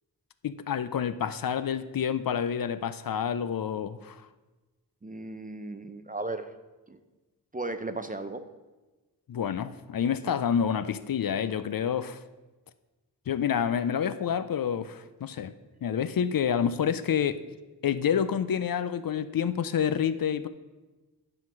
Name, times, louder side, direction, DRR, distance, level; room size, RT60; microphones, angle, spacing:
voice 1, 0.4-4.3 9.3-12.2 13.3-15.5 15.8-17.4 17.8-20.5, left 8 dB, 60° left, 13 dB, 0.5 m, -28 dB
voice 2, 5.0-6.5 6.9-7.0 7.5-8.4, right 2 dB, 20° right, 9 dB, 0.5 m, -35 dB
10.0 x 3.8 x 5.9 m, 1.2 s
wide cardioid pair, 95°, 39 cm